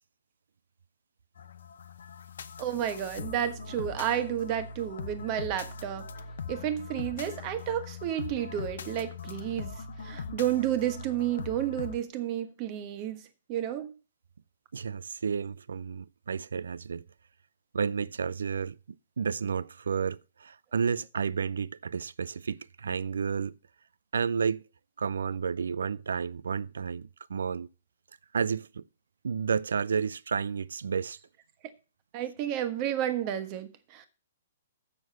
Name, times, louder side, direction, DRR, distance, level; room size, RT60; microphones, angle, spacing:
sound 1, 1.4-12.0, left 5 dB, 65° left, 0.8 m, -41 dB
voice 1, 2.6-6.1 6.5-13.2 13.5-13.9 32.1-34.1, right 11 dB, 35° right, 1.3 m, -31 dB
voice 2, 14.7-17.0 17.7-18.8 19.2-23.5 24.1-24.6 25.0-27.7 28.3-28.9 29.2-31.2, right 6 dB, 70° right, 0.4 m, -31 dB
7.5 x 6.2 x 7.4 m
figure-of-eight pair, 120°, 0 cm